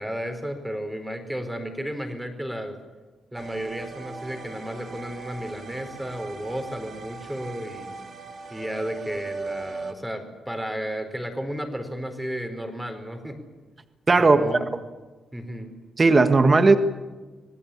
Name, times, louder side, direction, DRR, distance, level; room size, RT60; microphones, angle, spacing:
voice 1, 0.0-2.7 3.3-7.9 8.5-13.4 14.2-14.6 15.3-15.7, equal, 5° right, 6 dB, 4.4 m, -33 dB
sound 1, 3.3-9.9, right 4 dB, 50° right, 3.0 m, -38 dB
voice 2, 14.1-14.5 16.0-16.8, right 3 dB, 30° right, 9 dB, 1.7 m, -16 dB
26.0 x 18.0 x 8.6 m, 1.2 s
cardioid pair, 95°, 0 cm